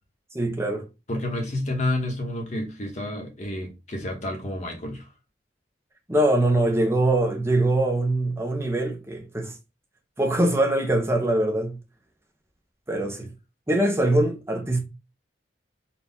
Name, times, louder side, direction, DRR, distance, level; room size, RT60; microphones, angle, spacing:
voice 1, 0.3-0.9 6.1-9.5 10.2-11.8 12.9-13.3 13.7-14.8, right 1 dB, 15° right, 0.6 m, -23 dB
voice 2, 1.1-5.1, left 1 dB, 40° left, 1.1 m, -29 dB
4.2 x 2.3 x 3.5 m
head